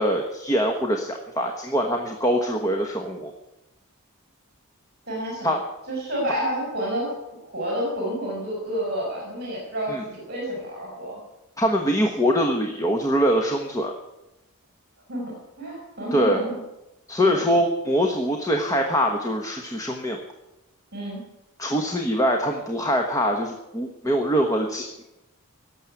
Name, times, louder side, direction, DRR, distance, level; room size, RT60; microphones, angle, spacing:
voice 1, 0.0-3.3 5.4-5.6 9.9-10.0 11.6-13.9 16.1-16.4 17.1-20.2 21.6-25.0, equal, 15° left, 2 dB, 1.1 m, -23 dB
voice 2, 5.1-5.5 5.9-7.1 7.4-11.2 15.1-15.3 15.6-16.6 17.2-17.4 20.9-21.2, right 1 dB, 50° right, -2 dB, 4.7 m, -29 dB
17.5 x 7.5 x 9.7 m, 0.96 s
head